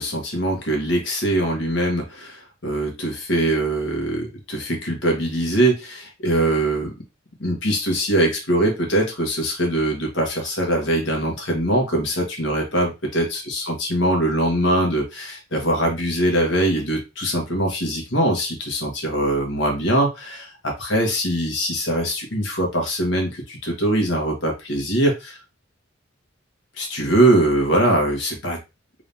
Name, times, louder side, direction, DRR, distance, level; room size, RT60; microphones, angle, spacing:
voice 1, 0.0-6.9 7.4-25.4 26.8-28.6, right 1 dB, 65° left, 0 dB, 1.5 m, -22 dB
3.8 x 2.7 x 3.5 m, 0.26 s
head